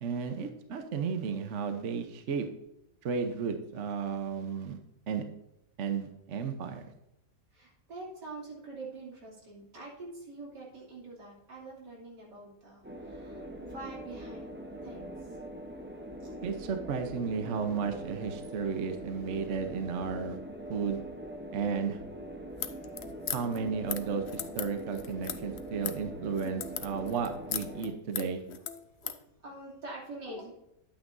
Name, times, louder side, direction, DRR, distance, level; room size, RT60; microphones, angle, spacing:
voice 1, 0.0-2.5 3.0-4.8 5.1-5.2 5.8-6.8 16.4-20.4 20.7-21.0 21.5-22.0 23.3-28.4, right 6 dB, 55° right, 6 dB, 1.1 m, -33 dB
voice 2, 7.5-14.6 14.8-15.1 16.2-16.3 29.0-29.2 29.4-30.5, right 2 dB, 80° right, -4 dB, 3.5 m, -45 dB
sound 1, 12.8-27.9, right 1 dB, 15° right, 0.4 m, -43 dB
sound 2, 22.5-29.2, left 9 dB, 65° left, 0.6 m, -38 dB
10.0 x 8.9 x 2.7 m, 0.85 s
omnidirectional pair, 1.8 m